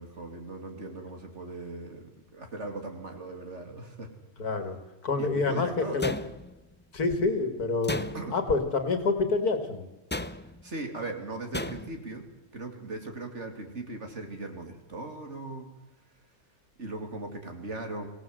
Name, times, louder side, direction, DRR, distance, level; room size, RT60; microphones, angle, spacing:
voice 1, 0.0-4.1 5.2-6.1 8.1-8.4 10.6-12.3 12.5-15.7 16.8-18.1, right 2 dB, 50° right, 4 dB, 3.2 m, -38 dB
voice 2, 4.4-6.1 6.9-8.0 8.3-9.8, left 3 dB, 85° left, 8 dB, 2.7 m, -27 dB
sound 1, 6.0-6.7 7.8-8.5 10.1-10.7 11.5-12.1, left 1 dB, 15° left, 0.3 m, -35 dB
24.0 x 17.0 x 7.8 m, 1.0 s
omnidirectional pair, 1.6 m